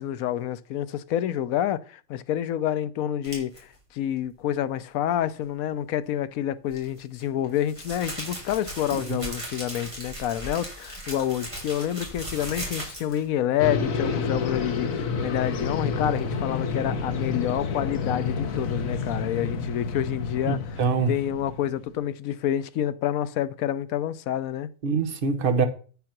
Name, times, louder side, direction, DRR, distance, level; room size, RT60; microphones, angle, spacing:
voice 1, 0.0-24.7, left 11 dB, 90° left, 1.1 m, -28 dB
sound 1, 3.2-3.6 6.7-13.3, right 1 dB, 20° right, 3.7 m, -37 dB
voice 2, 8.9-9.3 20.5-21.2 24.8-25.6, right 5 dB, 45° right, 1.2 m, -25 dB
sound 2, 13.6-21.9, left 5 dB, 70° left, 1.5 m, -29 dB
8.7 x 5.7 x 5.9 m
omnidirectional pair, 1.4 m